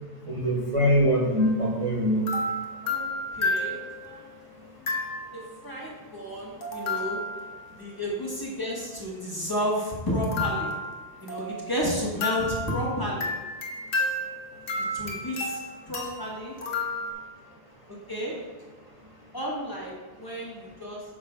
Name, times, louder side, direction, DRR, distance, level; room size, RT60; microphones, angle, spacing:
voice 1, 0.3-2.3, equal, 35° right, -4 dB, 0.9 m, -23 dB
sound 1, 1.4-1.7 2.3-4.2 4.9-5.5 6.6-7.6 10.2-11.8 12.2-17.1, left 2 dB, 60° left, 1.1 m, -31 dB
voice 2, 2.8-3.8 4.0-4.3 4.7-4.9 5.3-7.2 7.8-10.7 11.2-13.3 14.9-15.6 15.9-16.5 18.1-18.3 19.3-21.0, equal, 20° left, -5 dB, 1.3 m, -31 dB
9.1 x 6.0 x 2.2 m, 1.2 s
omnidirectional pair, 1.1 m